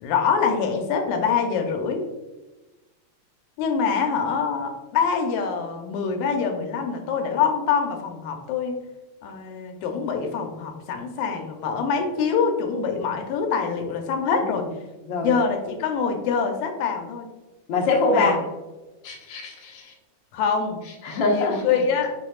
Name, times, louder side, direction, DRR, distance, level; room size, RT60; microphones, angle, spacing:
voice 1, 0.0-2.0 3.6-8.8 9.2-14.6 15.2-17.3 18.1-18.4 20.3-20.8 21.3-22.2, left 6 dB, 85° left, 4 dB, 1.9 m, -25 dB
voice 2, 17.7-18.4 19.0-19.9 21.0-21.8, left 3 dB, 60° left, -1 dB, 1.2 m, -23 dB
5.2 x 4.2 x 2.3 m, 1.1 s
omnidirectional pair, 3.4 m